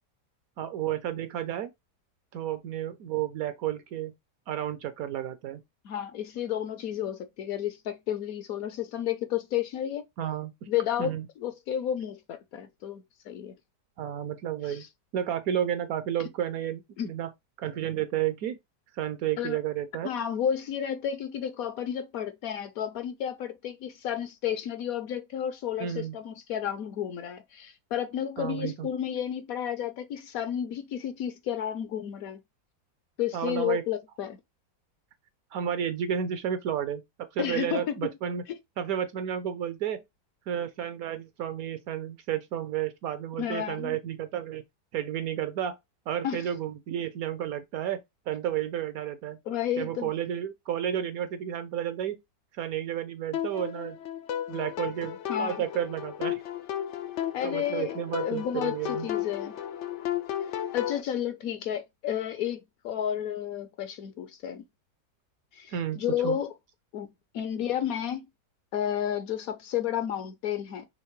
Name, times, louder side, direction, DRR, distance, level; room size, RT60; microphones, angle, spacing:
voice 1, 0.6-1.7 2.3-4.1 4.5-5.6 10.2-10.5 11.0-11.2 14.0-14.8 15.1-17.3 17.6-18.6 19.0-20.1 25.8-26.2 28.4-28.9 33.3-33.8 35.5-37.0 37.3-38.4 38.8-40.0 40.5-44.6 44.9-45.8 46.1-49.4 49.8-52.2 52.6-54.0 54.5-56.4 57.4-59.1 65.7-66.4, right 10 dB, 70° right, 0.9 m, -32 dB
voice 2, 5.8-10.0 10.7-13.5 14.6-14.9 17.0-17.1 19.4-19.6 20.0-32.4 33.2-34.4 37.4-38.1 43.4-44.0 46.2-46.5 49.5-50.1 55.3-55.6 57.3-57.9 58.2-59.5 60.7-64.6 65.5-66.5 66.9-67.1 67.3-68.2 68.7-70.9, left 10 dB, 65° left, 0.9 m, -32 dB
sound 1, 53.3-61.0, left 10 dB, 90° left, 0.6 m, -34 dB
5.7 x 3.0 x 3.0 m
omnidirectional pair, 1.8 m